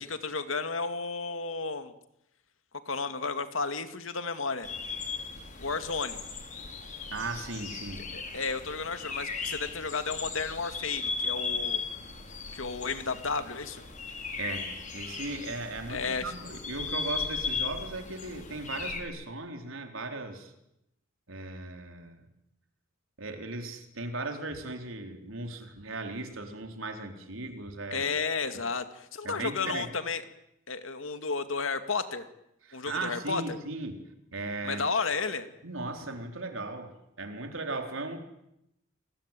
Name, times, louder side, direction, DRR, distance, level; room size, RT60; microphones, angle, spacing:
voice 1, 0.0-1.9 2.9-4.7 5.6-6.2 8.1-11.8 12.5-13.8 15.9-16.3 27.9-30.2 30.7-32.3 32.7-33.6 34.6-35.5, left 4 dB, 80° left, 8 dB, 2.4 m, -32 dB
sound 1, 4.6-19.0, left 4 dB, 40° left, 5.7 m, -37 dB
voice 2, 7.1-8.1 14.4-20.5 21.3-22.2 23.2-28.1 29.2-29.9 32.6-34.0 34.3-34.8 35.6-38.2, right 2 dB, 85° right, 4 dB, 4.2 m, -37 dB
29.5 x 21.5 x 9.2 m, 0.83 s
head